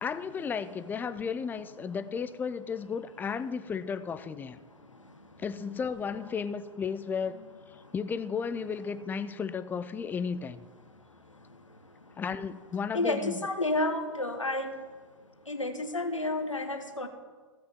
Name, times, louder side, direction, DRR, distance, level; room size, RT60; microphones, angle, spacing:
voice 1, 0.0-4.6 5.4-7.4 7.9-10.6 12.2-13.5, left 6 dB, 10° left, 13 dB, 0.4 m, -34 dB
voice 2, 12.9-14.7 15.5-17.1, left 2 dB, 90° left, 6 dB, 1.0 m, -30 dB
15.0 x 7.6 x 3.6 m, 1.5 s
figure-of-eight pair, 100°, 16 cm